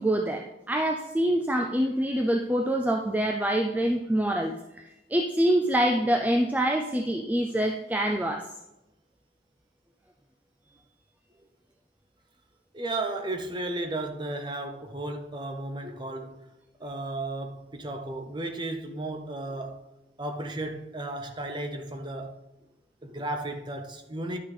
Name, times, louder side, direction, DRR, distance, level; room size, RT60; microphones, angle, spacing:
voice 1, 0.0-4.8 5.1-8.5, right 1 dB, 10° right, 0.4 m, -25 dB
voice 2, 12.7-16.4 16.8-19.9 20.2-22.4 23.0-24.4, right 2 dB, 25° right, 0.8 m, -34 dB
11.0 x 6.1 x 3.4 m
head